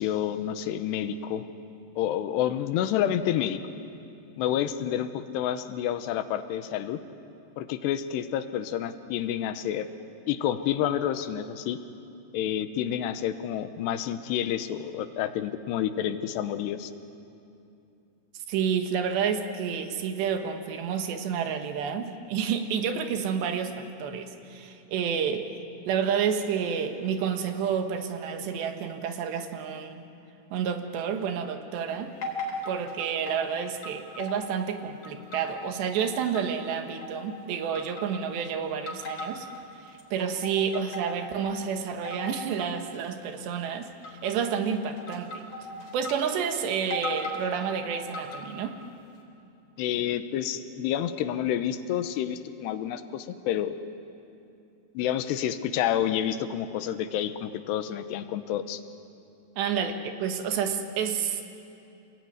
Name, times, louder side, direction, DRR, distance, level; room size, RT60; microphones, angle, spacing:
voice 1, 0.0-1.4 2.0-3.6 4.4-7.0 7.6-9.9 10.3-11.8 12.3-16.9 49.8-53.8 54.9-58.8, left 10 dB, 85° left, 11 dB, 3.0 m, -29 dB
voice 2, 18.5-25.5 25.9-30.1 30.5-32.1 32.7-39.5 39.9-45.5 45.9-48.8 59.6-61.4, right 7 dB, 85° right, 6 dB, 3.7 m, -30 dB
sound 1, 32.2-33.5 33.8-34.7 35.0-36.7 37.0-37.4 37.7-38.4 38.9-39.6 40.0-41.6 42.0-42.6 42.9-43.2 44.0-44.4 45.0-46.2 46.4-46.5 46.9-47.4 47.9-48.6, left 1 dB, 50° left, 5.2 m, -37 dB
27.5 x 20.5 x 9.6 m, 2.7 s
omnidirectional pair, 4.9 m